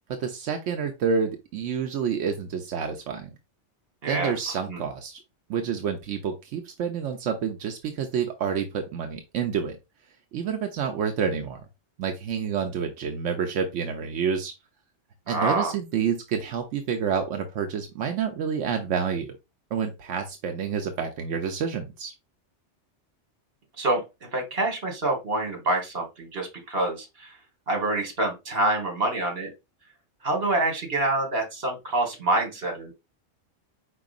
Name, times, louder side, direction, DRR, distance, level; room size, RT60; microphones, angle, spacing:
voice 1, 0.2-3.3 4.1-5.2 5.5-9.8 10.3-11.6 12.0-14.5 15.3-19.3 19.7-22.1, right 7 dB, 85° right, 5 dB, 1.0 m, -28 dB
voice 2, 4.0-4.3 4.7-4.8 15.3-15.7 23.8-27.4 27.7-29.5 30.2-32.9, right 2 dB, 55° right, 2 dB, 1.8 m, -26 dB
4.8 x 4.4 x 2.4 m, 0.24 s
omnidirectional pair, 1.2 m